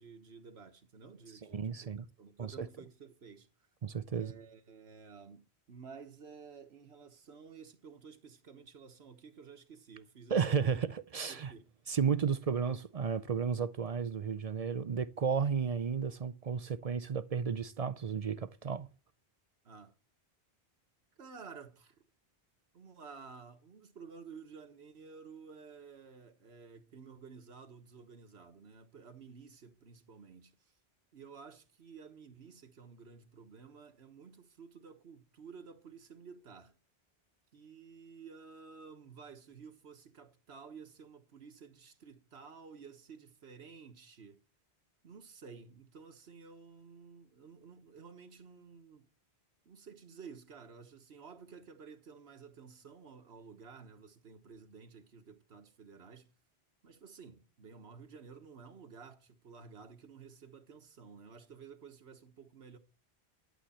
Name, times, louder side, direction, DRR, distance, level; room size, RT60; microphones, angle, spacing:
voice 1, 0.0-3.5 4.1-10.8 11.3-11.7 19.6-19.9 21.2-22.0 22.7-30.7 31.1-36.8 37.5-44.4 45.0-49.1 49.6-56.3 56.8-62.8, right 5 dB, 75° right, 1.5 m, -53 dB
voice 2, 1.5-2.0 2.4-2.7 3.8-4.3 10.3-11.5 11.9-18.9, right 6 dB, 45° right, 0.5 m, -33 dB
11.5 x 7.8 x 4.3 m
omnidirectional pair, 1.1 m